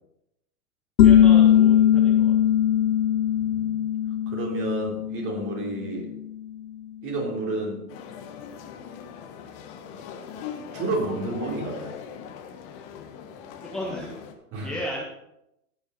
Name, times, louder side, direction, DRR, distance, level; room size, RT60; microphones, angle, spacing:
sound 1, 1.0-6.4, left 10 dB, 80° left, 0.8 m, -20 dB
voice 1, 1.0-2.3 13.6-14.1 14.6-15.0, equal, ahead, -5 dB, 1.6 m, -34 dB
voice 2, 3.3-3.8 4.3-6.1 7.0-7.8 10.7-12.0 14.5-14.7, right 2 dB, 30° right, -2 dB, 3.6 m, -30 dB
sound 2, 7.9-14.3, left 7 dB, 30° left, 1.4 m, -40 dB
17.0 x 6.4 x 4.0 m, 0.84 s
hypercardioid pair, 125°, 47 cm